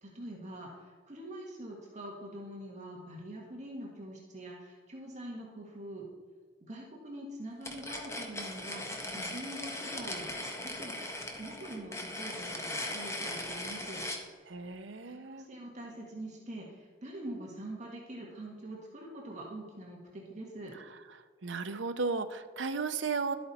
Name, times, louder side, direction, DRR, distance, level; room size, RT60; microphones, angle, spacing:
voice 1, 0.0-6.0 6.6-10.4 10.6-11.0 11.4-14.0 15.1-20.7, right 1 dB, 40° right, -2 dB, 1.8 m, -44 dB
sound 1, 7.6-14.2, left 1 dB, 15° left, 1.3 m, -39 dB
voice 2, 14.5-15.5 20.7-21.2 21.4-23.3, right 4 dB, 80° right, 9 dB, 0.8 m, -35 dB
12.5 x 8.5 x 4.3 m, 1.5 s
head